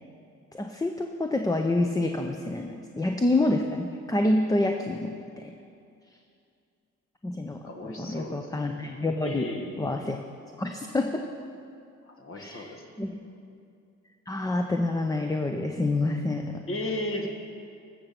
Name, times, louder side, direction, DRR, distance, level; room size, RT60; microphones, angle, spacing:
voice 1, 0.5-5.5 7.2-9.4 9.8-10.2 10.6-11.2 12.3-13.1 14.3-16.6, left 2 dB, 10° left, 4 dB, 0.6 m, -27 dB
voice 2, 7.7-8.5 9.2-9.8 12.0-12.8 16.7-17.3, left 1 dB, 45° left, 3 dB, 1.4 m, -34 dB
13.5 x 6.8 x 5.9 m, 2.5 s
cardioid pair, 90°, 30 cm